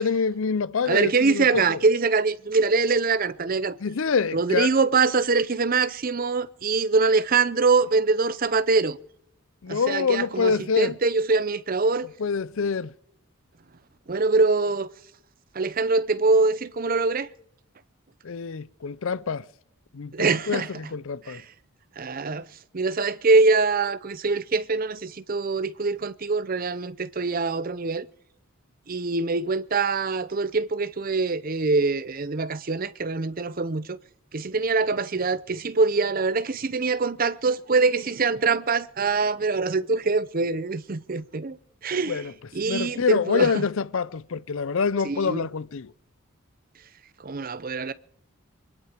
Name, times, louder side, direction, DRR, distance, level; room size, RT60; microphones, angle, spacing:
voice 1, 0.0-1.8 3.8-4.7 9.6-10.9 12.2-12.9 18.2-19.4 19.9-21.4 42.1-42.3 42.6-45.9, left 5 dB, 65° left, 0.5 m, -26 dB
voice 2, 0.9-3.8 4.3-9.0 9.7-12.1 14.1-14.9 15.6-17.3 20.1-20.7 21.3-21.4 22.0-22.4 22.7-28.1 28.9-34.0 34.3-41.6 41.8-42.2 42.5-43.6 45.0-45.5 47.2-47.9, right 4 dB, 40° right, 0.6 m, -24 dB
24.5 x 11.0 x 5.1 m
head